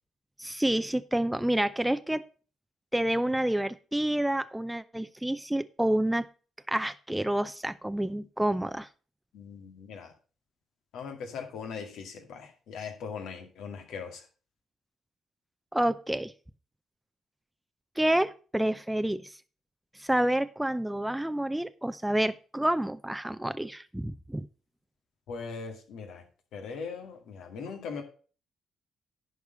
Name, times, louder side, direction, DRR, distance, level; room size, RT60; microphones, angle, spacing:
voice 1, 0.4-2.2 2.9-6.3 6.7-8.9 15.7-16.3 18.0-19.3 20.0-24.5, right 1 dB, 10° right, 11 dB, 0.7 m, -28 dB
voice 2, 9.3-10.1 10.9-14.3 25.3-26.2 26.5-28.0, left 5 dB, 70° left, 4 dB, 2.2 m, -40 dB
10.5 x 4.8 x 6.9 m, 0.38 s
hypercardioid pair, 45°, 0 cm